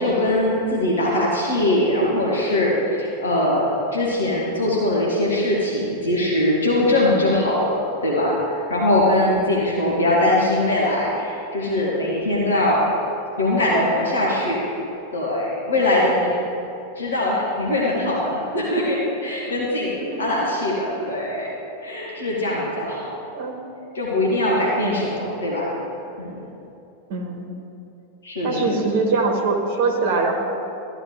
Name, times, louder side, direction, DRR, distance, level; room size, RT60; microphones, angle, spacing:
voice 1, 0.0-8.3 8.7-12.8 13.4-14.6 15.1-16.4 17.0-21.5 21.8-23.1 23.9-25.7 26.2-26.5 28.2-28.9, left 1 dB, 70° left, -5 dB, 1.8 m, -21 dB
voice 2, 27.1-27.5 28.4-30.3, right 3 dB, 50° right, 3 dB, 1.3 m, -23 dB
13.5 x 9.8 x 3.2 m, 2.8 s
figure-of-eight pair, 90°, 0 cm